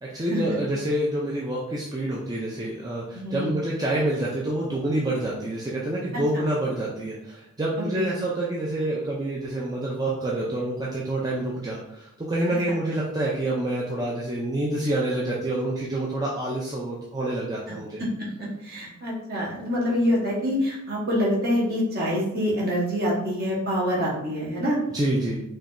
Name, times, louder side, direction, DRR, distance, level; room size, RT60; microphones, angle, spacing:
voice 1, 0.0-18.0 24.9-25.4, right 1 dB, 15° right, -5 dB, 0.4 m, -27 dB
voice 2, 3.1-3.5 6.3-6.5 8.0-8.1 12.7-12.8 18.0-18.1 18.4-24.8, equal, 45° right, -5 dB, 1.3 m, -26 dB
4.5 x 3.0 x 2.5 m, 0.82 s
head